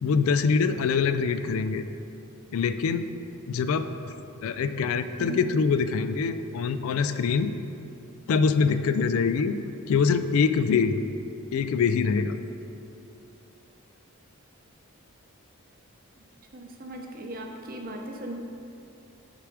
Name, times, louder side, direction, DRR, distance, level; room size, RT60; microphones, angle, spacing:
voice 1, 0.0-1.9 2.5-3.0 3.5-4.1 4.4-7.5 8.3-9.6 9.9-11.0 11.5-12.4, left 5 dB, 75° left, 10 dB, 0.3 m, -24 dB
voice 2, 16.5-18.4, right 1 dB, 40° right, 2 dB, 0.7 m, -38 dB
6.6 x 4.8 x 4.7 m, 2.8 s
head